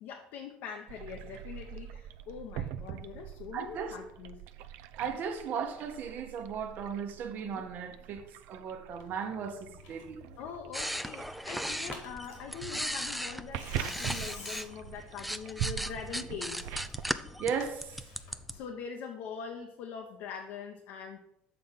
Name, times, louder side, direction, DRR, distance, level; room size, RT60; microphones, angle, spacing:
voice 1, 0.0-4.4 7.4-7.6 10.4-16.7 18.5-21.2, left 7 dB, 70° left, 0.7 m, -43 dB
sound 1, 0.9-17.2, right 11 dB, 75° right, 0.4 m, -43 dB
voice 2, 3.5-3.9 5.0-8.2 8.5-10.2 17.4-17.9, right 6 dB, 55° right, 1.0 m, -36 dB
Tearing, 9.0-18.6, left 4 dB, 90° left, 1.9 m, -51 dB
sound 2, 10.7-14.7 15.0-18.5, equal, ahead, 0.3 m, -37 dB
6.8 x 3.7 x 5.7 m
supercardioid pair, 95°, 4 cm